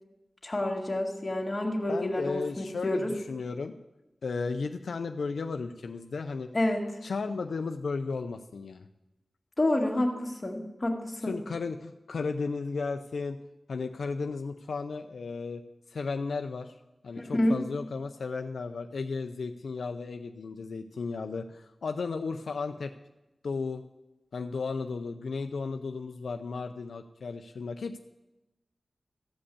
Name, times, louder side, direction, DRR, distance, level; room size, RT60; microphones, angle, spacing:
voice 1, 0.4-3.2 6.5-6.8 9.6-11.4 17.2-17.6, left 1 dB, 30° left, 1 dB, 2.1 m, -28 dB
voice 2, 1.9-3.7 4.2-6.5 7.0-8.9 11.2-13.4 13.7-15.6 15.9-16.8 17.0-22.9 23.4-23.8 24.3-28.0, left 4 dB, 85° left, 7 dB, 0.5 m, -34 dB
14.0 x 5.2 x 8.4 m, 0.98 s
wide cardioid pair, 70°, 0 cm